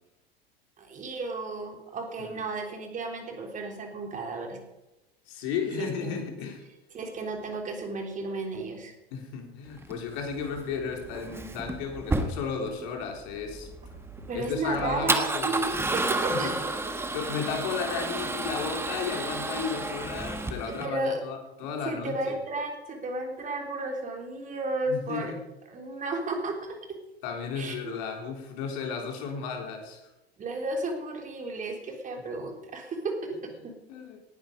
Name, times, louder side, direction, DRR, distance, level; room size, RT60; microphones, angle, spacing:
voice 1, 0.8-4.6 5.8-6.2 6.9-8.9 14.3-16.5 20.7-21.2 21.8-25.3 25.7-27.0 27.6-28.0 30.4-33.7, right 2 dB, 25° right, 3 dB, 3.5 m, -33 dB
voice 2, 5.3-6.6 9.1-13.7 14.3-15.9 16.3-16.5 17.1-22.4 24.9-25.4 27.2-30.1 33.9-34.2, left 6 dB, 50° left, 3 dB, 3.7 m, -34 dB
Male speech man speaking / Car / Engine starting, 9.8-20.9, right 2 dB, 10° right, 1.4 m, -32 dB
19.0 x 10.5 x 5.2 m, 0.99 s
figure-of-eight pair, 85°, 32 cm